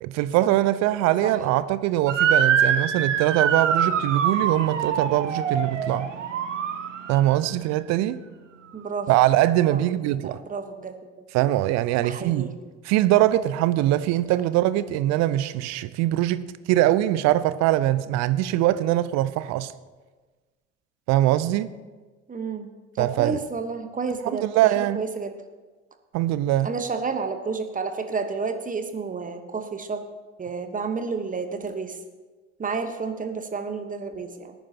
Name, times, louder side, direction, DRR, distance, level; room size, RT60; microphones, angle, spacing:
voice 1, 0.0-6.1 7.1-8.2 9.1-10.4 11.3-12.5 12.8-19.7 21.1-21.7 23.0-23.4 24.2-25.0 26.1-26.7, right 14 dB, 50° right, 0.6 m, -22 dB
Motor vehicle (road) / Siren, 2.1-7.3, right 7 dB, 80° right, 0.8 m, -24 dB
voice 2, 8.7-9.1 9.7-9.8 10.2-11.0 12.0-12.5 14.3-14.4 22.3-22.7 22.9-25.3 26.6-30.0 30.4-32.0 32.6-34.5, right 4 dB, 20° right, 1.2 m, -30 dB
18.5 x 9.9 x 2.9 m
figure-of-eight pair, 60°, 36 cm